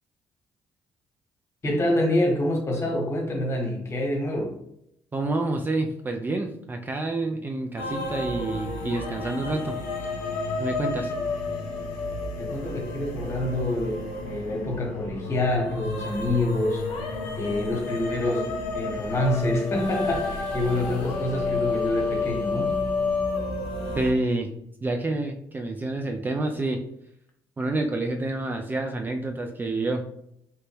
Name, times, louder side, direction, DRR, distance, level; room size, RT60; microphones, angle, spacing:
voice 1, 1.6-4.5 12.4-22.7, left 1 dB, 35° left, 0 dB, 1.0 m, -27 dB
voice 2, 5.1-9.8 10.6-11.1 24.0-24.5 24.8-26.8 27.6-30.0, right 2 dB, 25° right, 4 dB, 0.3 m, -28 dB
sound 1, 7.8-24.1, left 3 dB, 85° left, 0.5 m, -30 dB
3.0 x 2.1 x 3.2 m, 0.74 s
supercardioid pair, 65°, 8 cm